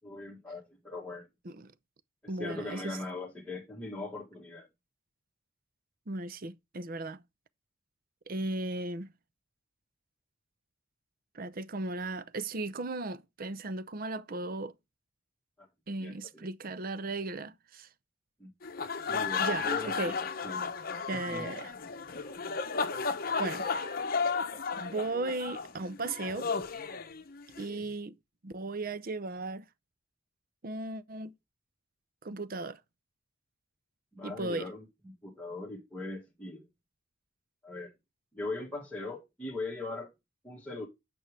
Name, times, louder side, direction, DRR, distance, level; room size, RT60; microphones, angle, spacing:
voice 1, 0.0-1.3 2.2-4.7 16.0-16.5 18.4-18.5 18.8-20.7 21.1-21.5 27.6-27.9 34.1-36.6 37.6-37.9 38.3-40.1 40.4-40.9, left 2 dB, 5° left, 1.7 m, -40 dB
voice 2, 2.3-3.0 6.1-7.2 8.3-9.1 11.3-14.7 15.9-17.9 19.4-20.1 21.1-21.7 23.4-23.6 24.2-24.4 24.8-26.5 27.6-28.2 28.4-29.6 30.6-31.3 32.2-32.8 34.2-34.7, right 2 dB, 45° right, 0.6 m, -36 dB
sound 1, 18.6-27.6, left 5 dB, 45° left, 0.8 m, -34 dB
8.9 x 6.1 x 3.3 m
head